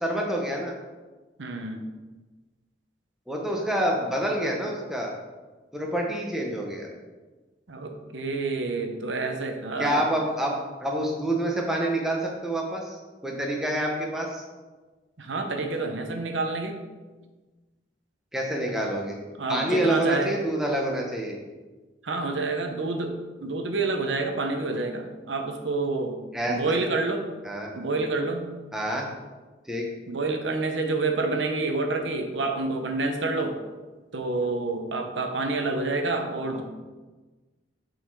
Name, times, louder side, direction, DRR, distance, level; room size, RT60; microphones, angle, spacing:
voice 1, 0.0-0.7 3.3-5.1 5.7-6.9 9.8-10.5 10.8-13.0 13.2-14.4 18.3-19.2 19.5-21.4 26.3-26.6 27.4-27.7 28.7-29.0 29.7-29.9, right 1 dB, 5° right, -1 dB, 0.8 m, -27 dB
voice 2, 1.4-1.8 7.7-10.0 15.2-16.8 19.4-20.3 22.0-26.2 26.5-27.3 27.7-28.5 30.1-33.6 34.1-36.6, right 3 dB, 85° right, 4 dB, 0.8 m, -28 dB
6.5 x 4.1 x 4.6 m, 1.3 s
head